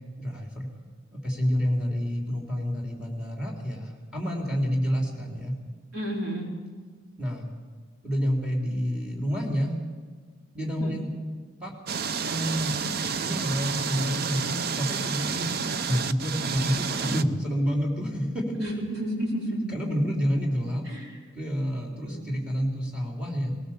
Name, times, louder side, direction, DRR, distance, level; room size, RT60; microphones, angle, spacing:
voice 1, 0.2-0.7 1.1-5.5 7.2-7.5 8.0-9.8 10.5-11.1 11.6-11.7 12.2-15.6 15.9-18.6 19.7-20.9 21.3-23.5, equal, 5° right, 0 dB, 3.6 m, -28 dB
voice 2, 5.9-6.5 10.8-10.9 18.6-19.6 20.9-21.0 22.1-22.2, equal, 90° right, -1 dB, 4.7 m, -31 dB
sound 1, 11.9-17.2, right 6 dB, 50° right, 0.6 m, -30 dB
20.0 x 19.0 x 7.3 m, 1.5 s
head